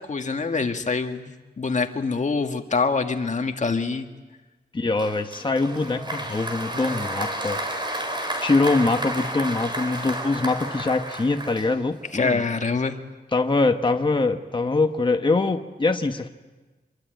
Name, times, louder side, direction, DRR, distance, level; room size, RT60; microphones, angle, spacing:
voice 1, 0.0-4.1 12.1-13.0, left 4 dB, 45° left, 5 dB, 1.9 m, -25 dB
voice 2, 4.7-7.9 8.4-12.4 13.3-16.3, left 3 dB, 30° left, 5 dB, 1.2 m, -23 dB
Applause, 5.0-12.1, right 1 dB, 25° right, 4.3 m, -31 dB
26.0 x 23.0 x 9.2 m, 1.2 s
wide cardioid pair, 140°, 17 cm